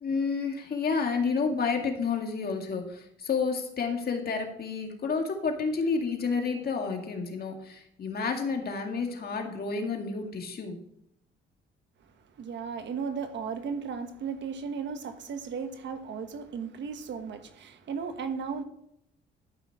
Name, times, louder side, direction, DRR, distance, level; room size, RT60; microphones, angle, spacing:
voice 1, 0.0-10.8, left 5 dB, 50° left, 2.1 m, -30 dB
voice 2, 12.4-18.6, right 6 dB, 65° right, 1.3 m, -35 dB
13.0 x 5.8 x 4.8 m
cardioid pair, 90°, 20 cm